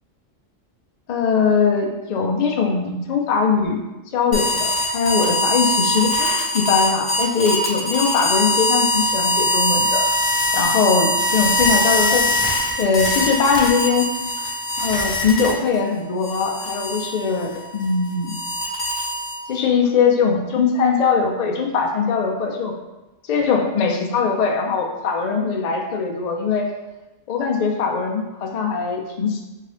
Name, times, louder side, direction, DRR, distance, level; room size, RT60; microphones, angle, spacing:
voice 1, 1.1-3.8 4.1-10.1 10.5-14.1 14.4-14.5 14.8-18.3 19.5-22.7 23.3-26.7 27.3-29.4, left 5 dB, 85° left, 2 dB, 0.3 m, -21 dB
sound 1, 4.3-15.8 16.2-19.6, left 1 dB, 45° left, 0.7 m, -22 dB
3.8 x 2.7 x 3.2 m, 1.1 s
omnidirectional pair, 1.3 m